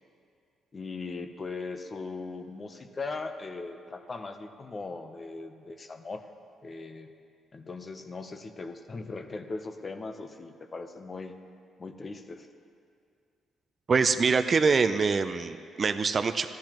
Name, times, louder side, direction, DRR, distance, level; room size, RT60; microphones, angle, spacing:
voice 1, 0.7-6.3 6.6-7.1 7.5-11.4 11.8-12.5, left 3 dB, 35° left, 8 dB, 0.7 m, -39 dB
voice 2, 13.9-16.5, right 5 dB, 40° right, 9 dB, 0.4 m, -24 dB
13.5 x 12.0 x 3.0 m, 2.4 s
cardioid pair, 90°, 0 cm